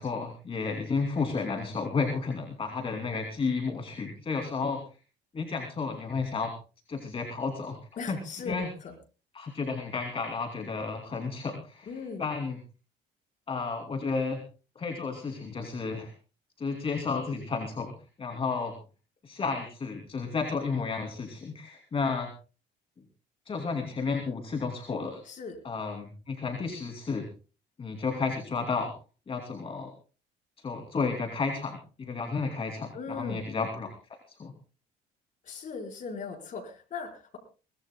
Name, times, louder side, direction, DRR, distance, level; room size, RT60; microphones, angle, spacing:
voice 1, 0.0-4.8 5.3-6.5 6.9-7.8 8.1-8.2 8.4-8.7 9.3-12.6 13.5-14.4 14.7-16.1 16.6-17.9 18.2-18.7 19.2-22.3 23.5-25.2 25.6-27.3 27.8-28.9 29.3-29.9 30.6-33.9 34.3-34.5, left 4 dB, 35° left, 3 dB, 2.9 m, -32 dB
voice 2, 8.0-8.9 11.9-12.2 25.3-25.6 32.9-33.4 35.5-37.4, left 5 dB, 50° left, 3 dB, 4.9 m, -38 dB
23.0 x 19.5 x 2.3 m, 0.35 s
cardioid pair, 110°, 17 cm